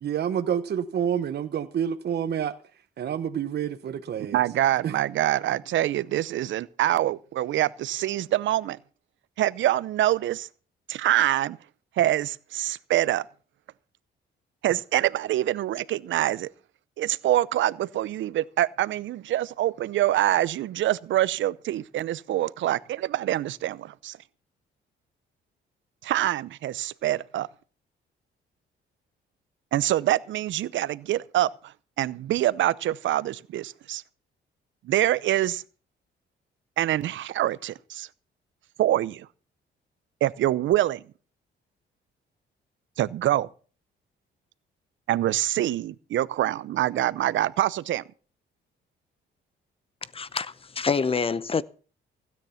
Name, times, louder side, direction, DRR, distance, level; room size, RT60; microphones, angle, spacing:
voice 1, 0.0-2.5 3.0-4.4 4.8-4.9, right 8 dB, 55° right, 1.1 m, -28 dB
voice 2, 4.3-8.8 9.4-10.5 10.9-11.6 12.0-13.2 14.6-16.5 17.0-24.2 26.0-27.5 29.7-31.5 32.0-34.0 34.8-35.6 36.8-38.1 38.8-39.3 40.2-41.0 43.0-43.5 45.1-48.0, right 13 dB, 75° right, 0.7 m, -25 dB
voice 3, 50.1-51.6, left 5 dB, 30° left, 0.7 m, -26 dB
16.0 x 9.5 x 5.7 m
cardioid pair, 90°, 20 cm